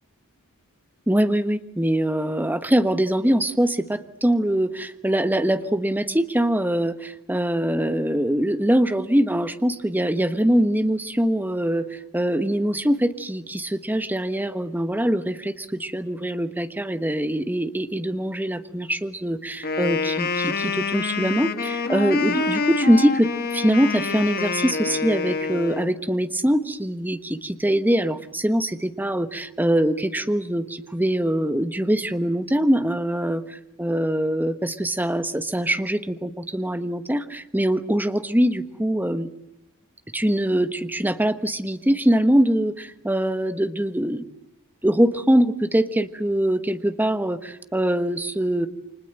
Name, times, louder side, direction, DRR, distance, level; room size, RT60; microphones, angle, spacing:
voice 1, 1.1-39.3 40.1-44.2 44.8-48.7, right 1 dB, 10° right, 10 dB, 1.2 m, -23 dB
Wind instrument woodwind instrument, 19.6-25.9, left 4 dB, 45° left, 1.6 m, -26 dB
29.5 x 25.5 x 7.9 m, 0.79 s
head